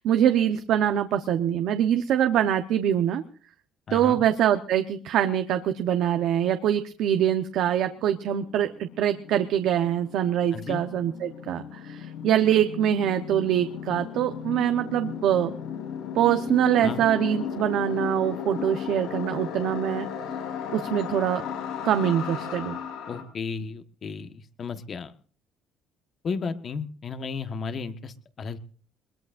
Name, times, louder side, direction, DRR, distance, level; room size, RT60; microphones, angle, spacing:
voice 1, 0.0-3.2 3.9-15.5 16.1-20.1 20.7-21.4 21.8-22.8, right 10 dB, 65° right, 8 dB, 1.0 m, -24 dB
voice 2, 3.9-4.2 10.5-10.8 16.8-17.0 23.1-25.1 26.2-28.6, left 5 dB, 35° left, 10 dB, 1.4 m, -34 dB
sound 1, 8.0-23.2, left 7 dB, 90° left, 6.0 m, -35 dB
21.5 x 21.5 x 2.6 m, 0.43 s
cardioid pair, 135°, 0 cm